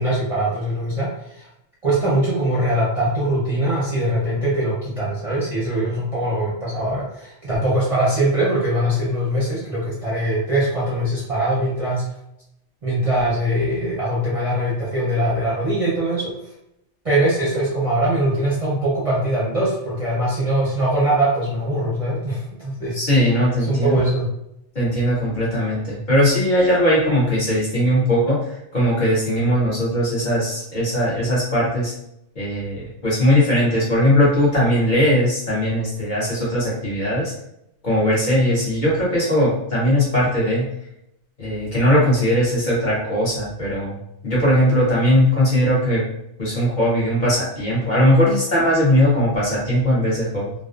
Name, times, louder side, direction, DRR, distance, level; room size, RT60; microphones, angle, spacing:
voice 1, 0.0-1.5 1.8-12.1 12.8-16.3 17.0-23.0 23.7-24.3, right 1 dB, 40° right, -8 dB, 0.5 m, -22 dB
voice 2, 22.9-24.1 24.7-31.9 32.4-37.3 37.8-40.6 41.4-44.0 44.2-46.0 46.4-50.5, equal, 50° left, -7 dB, 0.7 m, -19 dB
2.4 x 2.3 x 2.3 m, 0.81 s
omnidirectional pair, 1.3 m